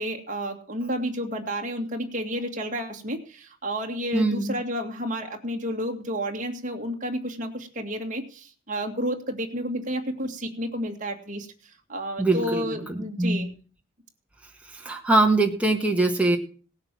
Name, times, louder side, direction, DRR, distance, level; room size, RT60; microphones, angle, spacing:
voice 1, 0.0-13.5, equal, 40° right, 2 dB, 2.1 m, -31 dB
voice 2, 4.1-4.6 12.2-13.5 14.7-16.4, right 2 dB, 5° right, 1 dB, 1.7 m, -23 dB
17.5 x 6.6 x 7.5 m, 0.40 s
head